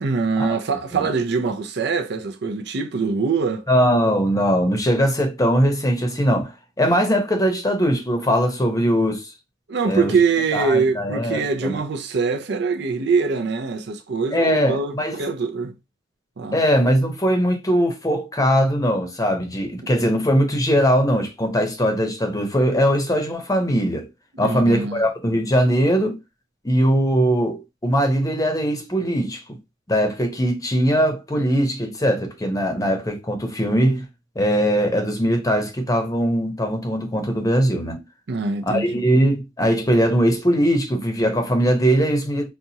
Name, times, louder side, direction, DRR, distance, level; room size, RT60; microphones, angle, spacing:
voice 1, 0.0-3.7 9.7-15.7 16.4-16.6 24.4-25.0 38.3-39.0, right 4 dB, 65° right, 0.5 m, -23 dB
voice 2, 3.7-6.5 6.8-9.3 9.9-10.1 10.5-11.8 14.3-15.2 16.5-24.1 24.4-26.2 26.6-29.4 29.9-34.1 34.4-38.0 38.6-42.5, equal, 20° left, 0.8 m, -20 dB
4.2 x 2.3 x 2.7 m
head